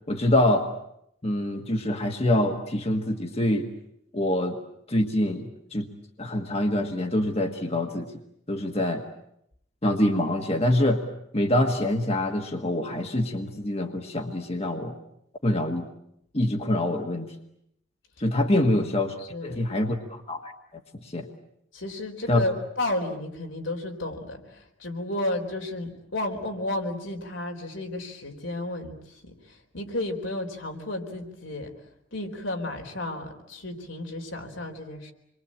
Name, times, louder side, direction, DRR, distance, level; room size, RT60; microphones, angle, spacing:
voice 1, 0.1-0.7 1.2-3.7 4.1-4.6 4.9-5.9 6.2-8.1 8.5-9.0 9.8-11.0 11.3-15.0 15.4-15.9 16.3-17.3 18.2-19.2 19.4-20.5 21.0-21.3 22.3-22.4, left 1 dB, 30° left, 4 dB, 1.7 m, -25 dB
voice 2, 19.3-19.6 21.7-29.2 29.5-31.7 32.1-35.1, left 1 dB, 80° left, 2 dB, 4.2 m, -32 dB
27.5 x 23.0 x 8.8 m, 0.77 s
head